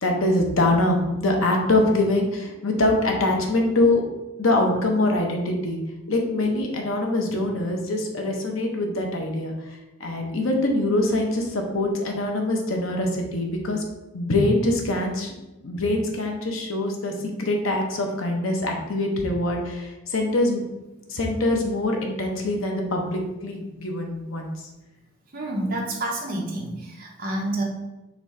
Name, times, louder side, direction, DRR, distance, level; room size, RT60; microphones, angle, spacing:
voice 1, 0.0-4.0 4.4-5.8 6.1-9.5 10.0-13.8 14.1-15.3 15.6-17.1 17.4-20.6 21.1-24.5, left 2 dB, 85° left, 2 dB, 0.8 m, -24 dB
voice 2, 25.3-27.6, right 1 dB, 45° right, -1 dB, 0.9 m, -28 dB
4.0 x 3.6 x 3.2 m, 1.0 s
head